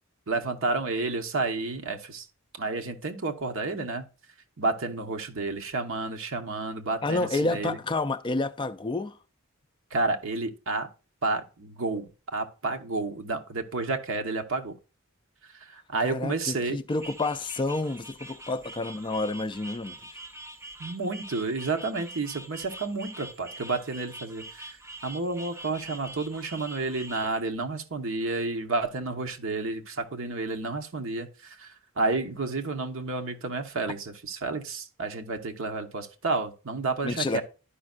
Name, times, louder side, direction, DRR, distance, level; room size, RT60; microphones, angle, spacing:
voice 1, 0.3-2.2 2.6-4.0 4.6-7.8 9.9-10.9 11.2-14.8 15.6-16.8 20.8-24.7 25.0-31.7 32.0-37.4, right 3 dB, 65° right, 1.0 m, -30 dB
voice 2, 7.0-9.2 16.0-20.2 37.0-37.4, left 2 dB, 25° left, 0.4 m, -29 dB
sound 1, 16.9-27.4, right 1 dB, 15° right, 0.7 m, -44 dB
12.0 x 5.3 x 2.4 m
head